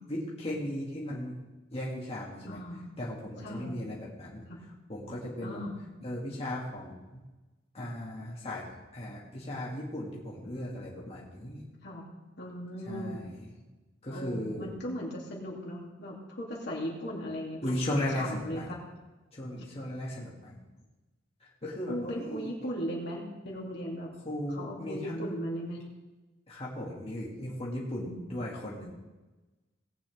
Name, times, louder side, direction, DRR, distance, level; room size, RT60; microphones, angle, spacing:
voice 1, 0.1-1.3 1.7-2.6 3.0-4.5 4.9-5.6 6.0-7.2 7.7-11.6 12.9-13.4 14.0-14.7 17.6-18.7 19.3-20.5 21.6-22.5 24.2-25.4 26.5-29.0, left 1 dB, 35° left, -5 dB, 2.2 m, -36 dB
voice 2, 2.4-2.8 3.4-3.9 4.5-4.6 5.4-5.7 11.8-12.0 12.4-13.2 14.1-17.8 18.2-18.8 19.6-19.7 21.9-24.1 24.5-25.8 27.9-28.3, equal, 65° left, -3 dB, 2.9 m, -38 dB
18.5 x 8.6 x 3.6 m, 1.1 s
head